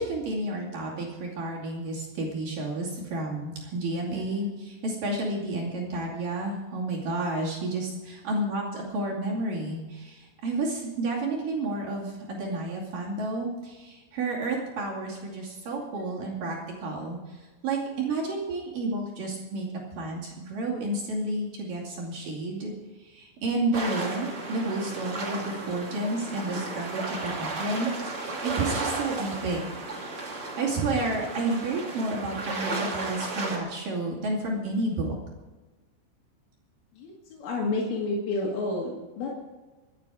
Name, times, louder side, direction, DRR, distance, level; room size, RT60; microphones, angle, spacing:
voice 1, 0.0-17.2 17.6-19.7 20.0-22.7 23.0-27.9 28.1-29.6 30.3-35.1, right 2 dB, 50° right, -4 dB, 3.7 m, -31 dB
sound 1, 23.7-33.6, right 3 dB, 35° right, 2.7 m, -34 dB
voice 2, 37.0-39.3, left 2 dB, 85° left, -3 dB, 4.7 m, -30 dB
25.5 x 9.3 x 4.9 m, 1.2 s
omnidirectional pair, 5.5 m